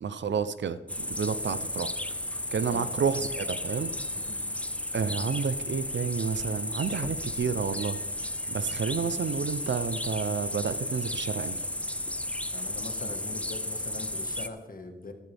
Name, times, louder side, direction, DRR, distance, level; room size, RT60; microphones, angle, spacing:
voice 1, 0.0-1.9 2.5-3.9 4.9-8.0 8.5-11.6, right 6 dB, 85° right, 14 dB, 0.7 m, -30 dB
sound 1, 0.9-14.5, left 1 dB, 5° left, 0.6 m, -34 dB
voice 2, 12.5-15.1, left 3 dB, 50° left, 6 dB, 1.6 m, -41 dB
13.5 x 12.5 x 3.5 m, 1.2 s
wide cardioid pair, 100°, 18 cm